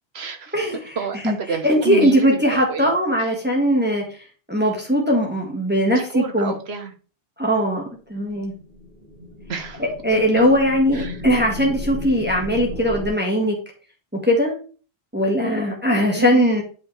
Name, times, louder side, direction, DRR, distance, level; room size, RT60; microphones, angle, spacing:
voice 1, 0.1-0.6 0.9-2.9 3.2-3.3 5.9-6.9 9.5-9.9 10.4-10.6 10.9-11.3 16.1-16.6, right 5 dB, 90° right, 7 dB, 1.4 m, -30 dB
voice 2, 1.6-4.0 4.5-6.5 7.4-8.5 10.0-13.6 14.1-14.5 15.1-16.6, equal, 10° right, -1 dB, 1.7 m, -19 dB
sound 1, 8.3-13.1, left 1 dB, 55° right, 2.4 m, -34 dB
8.1 x 5.6 x 3.3 m, 0.38 s
omnidirectional pair, 1.0 m